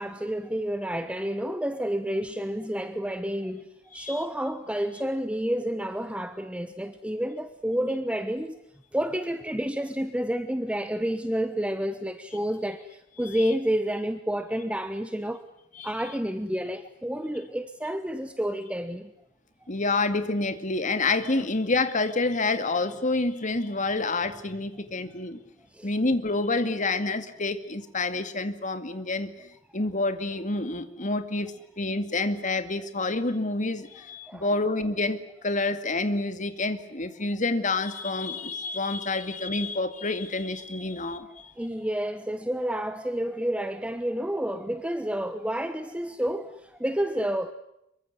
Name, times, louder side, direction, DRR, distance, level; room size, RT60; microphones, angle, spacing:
voice 1, 0.0-8.6 8.9-15.4 15.8-19.1 21.4-21.5 23.5-23.6 23.8-23.9 25.7-25.9 33.9-34.6 37.0-37.1 38.6-38.7 41.6-47.5, equal, 5° right, 1.2 m, -30 dB
voice 2, 19.7-25.4 25.8-29.3 29.7-35.2 35.4-41.5, left 3 dB, 40° left, 2.3 m, -28 dB
26.0 x 23.5 x 9.7 m
head